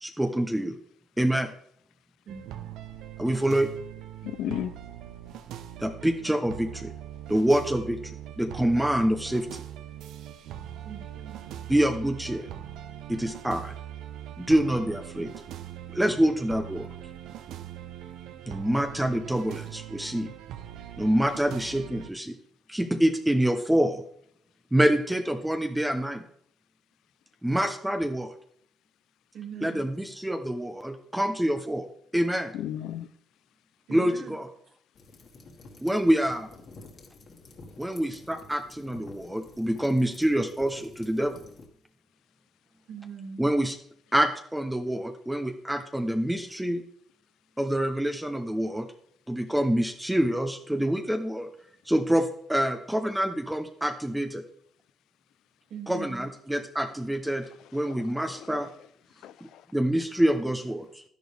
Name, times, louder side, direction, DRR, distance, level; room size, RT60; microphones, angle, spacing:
voice 1, 0.0-0.8 1.2-1.5 3.2-3.7 5.8-6.9 7.3-8.0 8.4-9.6 11.7-12.5 13.1-13.7 14.4-15.3 15.9-16.9 18.5-20.3 21.0-22.4 22.7-24.0 24.7-26.2 27.4-28.3 29.6-31.9 32.1-32.5 33.9-34.5 35.8-36.5 37.8-41.4 43.4-43.8 44.1-46.8 47.6-48.9 49.3-51.5 51.9-54.4 55.9-57.4 57.7-58.7 59.7-61.0, right 1 dB, 5° right, 0.8 m, -26 dB
voice 2, 2.2-2.8 4.4-4.7 10.8-11.7 29.3-29.9 33.9-34.4 34.7-34.8 42.8-43.4 55.7-56.3, right 7 dB, 65° right, 2.6 m, -42 dB
sound 1, 2.3-22.1, right 11 dB, 90° right, 0.7 m, -41 dB
voice 3, 4.2-4.7 32.5-33.1 57.6-58.6 59.2-59.7, left 11 dB, 85° left, 0.6 m, -36 dB
sound 2, 35.0-41.7, left 3 dB, 50° left, 1.9 m, -50 dB
11.5 x 10.5 x 3.5 m
cardioid pair, 120°, 0 cm